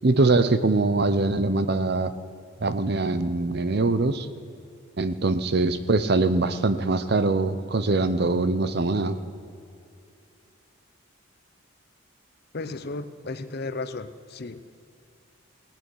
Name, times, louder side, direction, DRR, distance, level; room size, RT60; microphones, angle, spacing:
voice 1, 0.0-2.1 2.6-4.3 5.0-9.2, right 3 dB, 50° right, 12 dB, 0.6 m, -23 dB
voice 2, 12.5-14.7, left 3 dB, 50° left, 12 dB, 0.6 m, -34 dB
18.0 x 9.0 x 6.3 m, 2.5 s
head